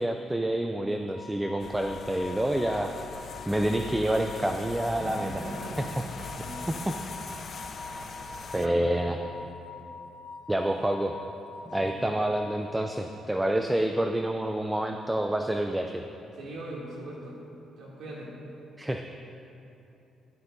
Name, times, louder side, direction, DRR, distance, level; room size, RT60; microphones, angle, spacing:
voice 1, 0.0-2.9 3.5-5.3 6.2-6.3 6.7-6.9 8.5-9.2 10.5-11.2 11.7-16.0 18.8-19.1, right 1 dB, 10° right, 4 dB, 0.5 m, -28 dB
sound 1, 1.1-13.3, left 3 dB, 70° left, 2.2 m, -44 dB
sound 2, 1.6-8.7, left 5 dB, 50° left, 0.6 m, -42 dB
voice 2, 4.9-7.0 7.3-7.5 7.9-8.1 8.6-8.9 11.8-11.9 16.3-17.4 17.8-18.3, right 1 dB, 70° right, -4 dB, 2.7 m, -41 dB
13.0 x 12.5 x 2.7 m, 2.8 s
cardioid pair, 90°, 0 cm